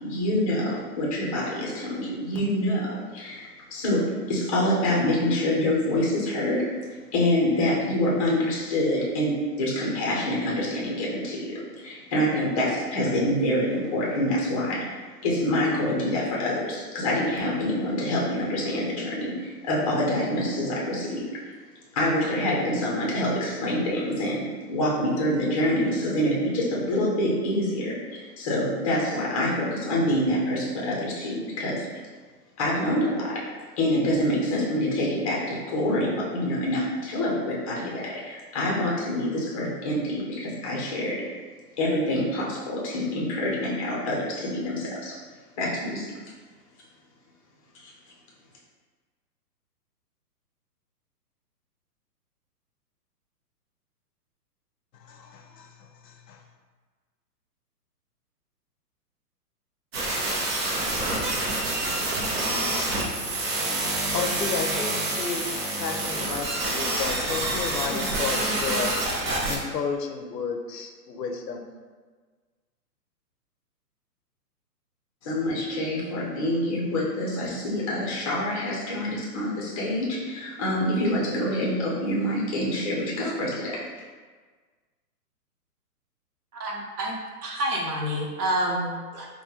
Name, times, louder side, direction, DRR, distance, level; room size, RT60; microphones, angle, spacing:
voice 1, 0.0-6.6 7.1-14.8 15.2-21.2 21.9-24.4 24.7-31.9 32.6-33.4 33.8-41.2 41.8-45.2 45.6-46.1 47.7-47.9 75.2-83.8, left 1 dB, 25° left, -4 dB, 0.6 m, -26 dB
voice 2, 54.9-56.4 64.1-68.9 69.5-71.7, left 5 dB, 85° left, 4 dB, 0.7 m, -33 dB
sound 1, 59.9-69.6, right 2 dB, 40° right, 0.8 m, -27 dB
voice 3, 86.5-87.1 87.4-89.3, right 1 dB, 70° right, 0 dB, 1.0 m, -28 dB
3.7 x 2.2 x 4.2 m, 1.4 s
hypercardioid pair, 150°, 48 cm